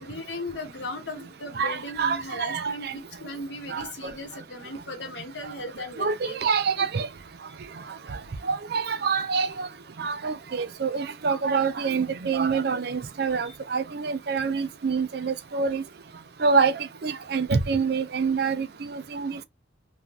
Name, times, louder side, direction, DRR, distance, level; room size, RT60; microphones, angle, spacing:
voice 1, 0.0-6.5 6.8-6.9 13.5-13.6, left 2 dB, 75° left, 1.0 m, -37 dB
voice 2, 1.6-2.9 3.7-4.1 6.0-7.1 8.1-8.2 8.4-9.7 10.0-15.8 16.4-19.4, right 5 dB, 60° right, 0.5 m, -26 dB
2.6 x 2.3 x 3.2 m
head